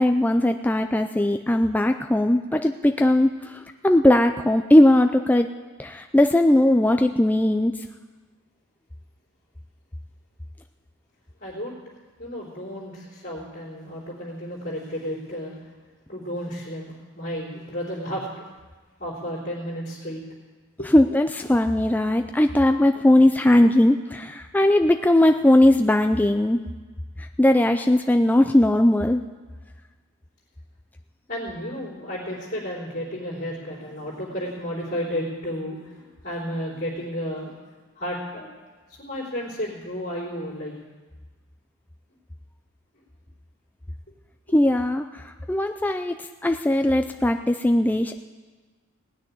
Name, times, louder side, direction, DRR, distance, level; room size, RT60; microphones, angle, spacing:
voice 1, 0.0-5.5 5.8-7.8 20.8-26.6 27.2-29.2 44.5-48.2, left 1 dB, 10° left, 6 dB, 0.3 m, -19 dB
voice 2, 11.4-11.7 12.2-15.5 16.1-18.3 19.0-20.2 20.8-20.9 31.3-37.5 38.0-38.5 39.0-40.8, equal, 40° left, -9 dB, 3.7 m, -32 dB
17.5 x 6.5 x 9.8 m, 1.3 s
head